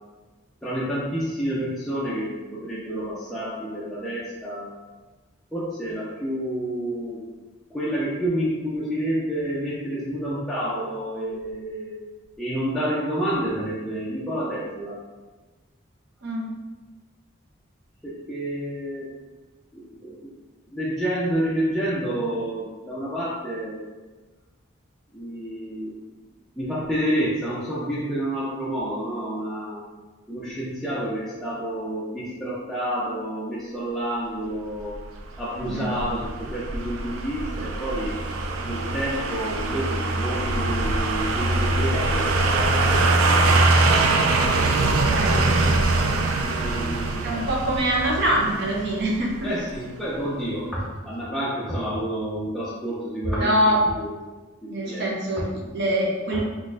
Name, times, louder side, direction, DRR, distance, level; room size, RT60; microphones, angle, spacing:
voice 1, 0.6-4.7 5.5-7.2 7.7-12.0 12.4-15.0 18.0-19.1 19.7-20.3 20.7-23.8 25.1-26.1 26.6-29.8 30.3-35.0 35.4-38.2 38.6-43.3 46.4-47.5 49.4-53.5 53.9-54.1 54.6-55.0, right 1 dB, ahead, -9 dB, 0.4 m, -29 dB
voice 2, 16.2-16.5 35.6-35.9 44.4-46.1 47.2-49.3 50.2-50.3 53.4-53.8 54.7-56.4, right 1 dB, 55° right, -3 dB, 0.7 m, -25 dB
sound 1, 34.9-49.8 50.1-50.2, right 2 dB, 85° right, 0.4 m, -23 dB
3.9 x 2.4 x 2.5 m, 1.3 s
head